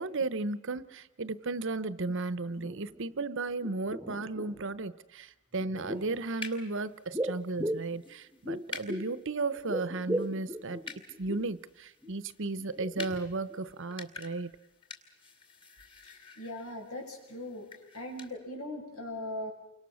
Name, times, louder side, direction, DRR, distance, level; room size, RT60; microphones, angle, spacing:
voice 1, 0.0-10.8 11.2-14.5, right 3 dB, 60° right, 15 dB, 0.9 m, -34 dB
sound 1, 2.1-2.2 2.4-3.3 3.6-4.8 5.5-6.2 7.1-9.2 9.5-11.6 12.0-12.2 12.6-13.6 13.9-14.0, right 1 dB, 5° right, 1.2 m, -38 dB
sound 2, 5.8-18.3, left 4 dB, 25° left, 2.7 m, -49 dB
voice 2, 16.0-17.7 17.9-19.5, left 1 dB, 75° left, 1 dB, 7.0 m, -40 dB
29.5 x 25.0 x 6.4 m, 0.98 s
head